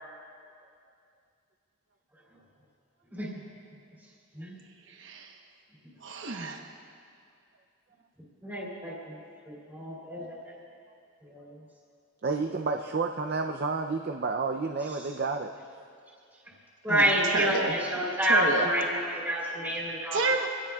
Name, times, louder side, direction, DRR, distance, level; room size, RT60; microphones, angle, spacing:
voice 1, 3.1-3.4 4.3-4.6 8.4-9.2 9.5-10.5 11.2-11.5 14.9-15.1 16.8-20.4, equal, 10° right, -6 dB, 2.7 m, -29 dB
voice 2, 4.9-5.3 6.0-6.6 16.9-17.7 18.3-18.7 20.1-20.5, right 3 dB, 65° right, 2 dB, 1.1 m, -30 dB
voice 3, 12.2-15.5, right 4 dB, 50° right, 4 dB, 0.5 m, -30 dB
24.5 x 17.0 x 2.4 m, 2.3 s
head